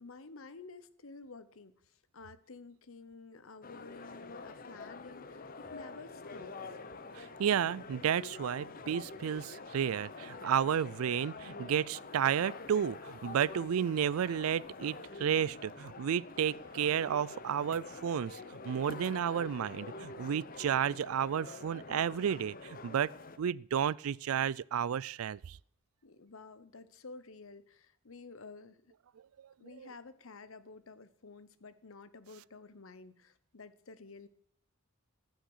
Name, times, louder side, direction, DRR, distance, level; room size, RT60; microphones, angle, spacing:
voice 1, 0.0-6.8 26.0-28.9 29.6-34.3, left 4 dB, 70° left, 0.9 m, -51 dB
sound 1, 3.6-23.4, left 4 dB, 45° left, 0.8 m, -47 dB
voice 2, 7.1-23.1 23.4-25.6 29.8-29.9, right 8 dB, 85° right, 0.4 m, -32 dB
14.5 x 6.5 x 6.2 m
head